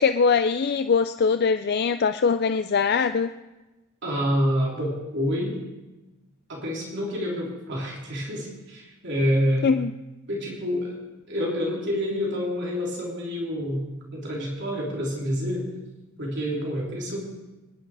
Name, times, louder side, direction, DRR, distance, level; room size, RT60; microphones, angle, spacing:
voice 1, 0.0-3.3 9.6-9.9, left 5 dB, 45° left, 10 dB, 0.4 m, -22 dB
voice 2, 4.0-5.5 6.5-9.7 10.3-11.0 11.3-13.8 14.1-15.6 16.2-17.2, equal, 55° right, -3 dB, 3.3 m, -27 dB
24.0 x 10.5 x 4.8 m, 1.1 s
head